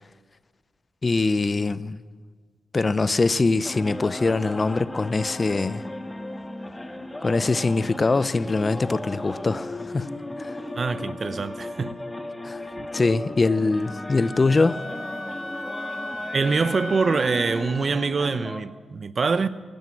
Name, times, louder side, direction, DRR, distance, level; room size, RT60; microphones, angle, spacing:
voice 1, 1.0-2.0 2.7-5.8 7.2-10.1 10.4-10.6 12.4-12.6 12.9-14.8, left 3 dB, 35° left, 0.6 m, -23 dB
sound 1, 3.6-18.6, left 1 dB, 15° left, 1.3 m, -36 dB
voice 2, 10.7-12.0 12.8-12.9 16.3-19.5, right 4 dB, 50° right, 0.8 m, -24 dB
Wind instrument woodwind instrument, 13.8-17.9, left 1 dB, 60° left, 3.7 m, -36 dB
16.0 x 12.0 x 7.7 m
supercardioid pair, 50°, 0 cm